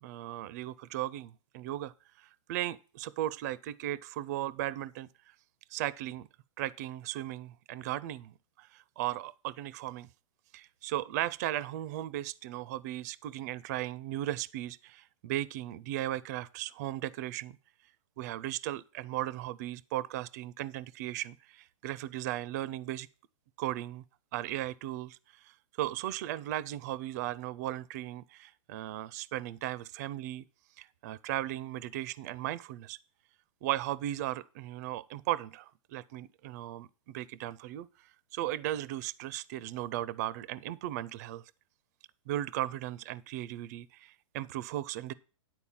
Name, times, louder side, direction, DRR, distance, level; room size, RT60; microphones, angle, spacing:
voice 1, 0.0-5.1 5.7-6.3 6.6-10.1 10.5-17.6 18.2-23.1 23.6-24.0 24.3-25.2 25.4-25.5 25.8-30.4 30.8-33.0 33.6-41.4 42.3-45.1, right 14 dB, 30° right, 0.4 m, -36 dB
10.0 x 4.5 x 7.2 m
hypercardioid pair, 160°, 17 cm